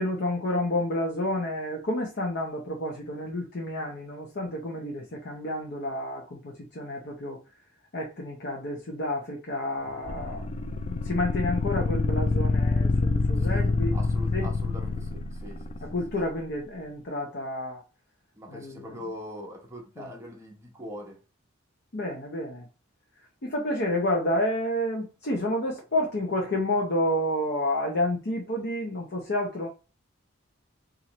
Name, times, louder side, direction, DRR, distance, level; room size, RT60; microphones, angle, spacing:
voice 1, 0.0-7.4 7.9-10.5 10.9-14.0 14.3-14.6 15.8-17.8 18.5-19.0 20.0-20.1 21.9-22.7 23.4-29.7, left 1 dB, 55° left, 0.8 m, -30 dB
sound 1, 10.1-16.2, left 3 dB, 30° left, 0.3 m, -27 dB
voice 2, 13.4-15.8 18.3-21.2, left 1 dB, 15° right, 0.9 m, -42 dB
4.2 x 2.6 x 3.0 m
head